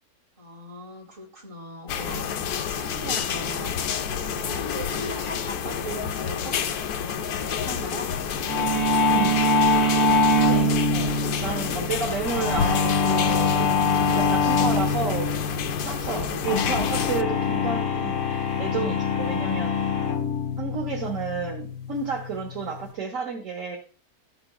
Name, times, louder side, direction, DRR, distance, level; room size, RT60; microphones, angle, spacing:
voice 1, 0.4-3.8 4.1-6.6 7.0-8.1 11.0-11.3, right 2 dB, 35° right, -2 dB, 3.1 m, -39 dB
sound 1, 1.9-17.2, left 7 dB, 85° left, 1.2 m, -29 dB
sound 2, 8.5-22.9, left 3 dB, 55° left, 1.6 m, -24 dB
voice 2, 9.1-9.8 10.5-15.3 15.8-19.7 20.6-23.8, right 5 dB, 60° right, 0 dB, 1.7 m, -31 dB
14.0 x 5.9 x 2.3 m, 0.39 s
omnidirectional pair, 1.6 m